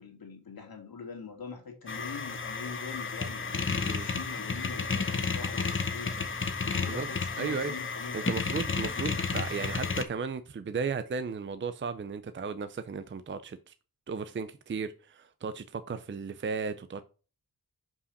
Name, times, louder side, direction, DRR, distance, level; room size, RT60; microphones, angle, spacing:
voice 1, 0.0-6.1 6.6-8.3 9.1-9.2, left 6 dB, 70° left, 3 dB, 2.4 m, -43 dB
sound 1, 1.9-10.0, left 4 dB, 35° left, 0.9 m, -32 dB
voice 2, 7.4-7.7 8.1-13.7 14.1-17.0, right 5 dB, 30° right, 12 dB, 0.5 m, -35 dB
5.6 x 5.0 x 6.4 m, 0.35 s
wide cardioid pair, 150°, 37 cm